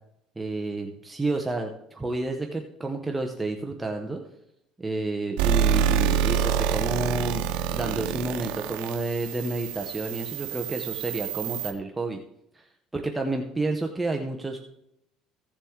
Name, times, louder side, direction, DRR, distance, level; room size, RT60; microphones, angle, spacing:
voice 1, 0.4-4.2 4.8-12.2 12.5-14.6, right 2 dB, 10° right, 3 dB, 0.7 m, -30 dB
sound 1, 5.4-11.7, right 8 dB, 80° right, 0.9 m, -27 dB
15.5 x 7.3 x 3.6 m, 0.80 s
cardioid pair, 165°, 0 cm